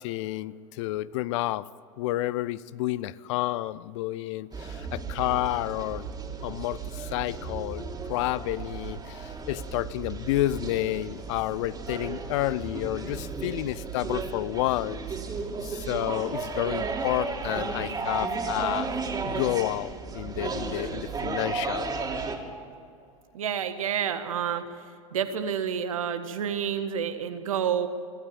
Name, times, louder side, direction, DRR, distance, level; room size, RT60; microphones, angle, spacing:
voice 1, 0.0-1.7 2.0-6.1 6.4-15.1 15.7-18.9 19.2-21.9, left 16 dB, 60° left, 19 dB, 0.6 m, -30 dB
sound 1, 4.5-22.4, right 4 dB, 20° right, 3.0 m, -34 dB
voice 2, 23.3-24.8 25.1-27.9, right 8 dB, 75° right, 9 dB, 1.6 m, -29 dB
24.5 x 13.0 x 9.0 m, 2.4 s
hypercardioid pair, 85°, 18 cm